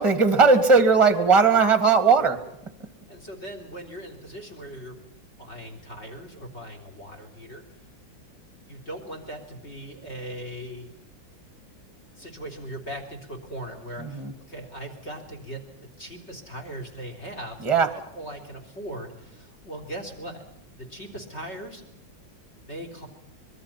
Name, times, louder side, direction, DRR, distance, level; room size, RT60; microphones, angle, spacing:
voice 1, 0.0-2.4 14.0-14.3 17.6-17.9, right 4 dB, 15° right, 10 dB, 1.8 m, -18 dB
voice 2, 3.1-5.1 5.4-7.7 8.6-10.9 12.2-20.4 20.7-21.8 22.6-23.1, right 1 dB, 35° left, 6 dB, 3.9 m, -39 dB
25.5 x 21.5 x 5.8 m, 0.82 s
omnidirectional pair, 2.1 m